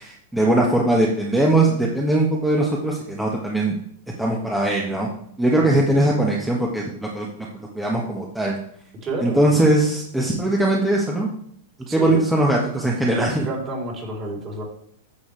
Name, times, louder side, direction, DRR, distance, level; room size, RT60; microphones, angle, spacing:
voice 1, 0.0-3.7 4.2-5.1 5.4-7.3 7.5-8.6 9.2-11.3 11.9-13.5, right 1 dB, 5° right, -3 dB, 1.5 m, -20 dB
voice 2, 5.6-6.2 9.0-9.4 11.9-12.3 13.1-14.6, right 2 dB, 30° right, -1 dB, 3.6 m, -30 dB
9.6 x 7.0 x 3.4 m, 0.67 s
hypercardioid pair, 105°, 0 cm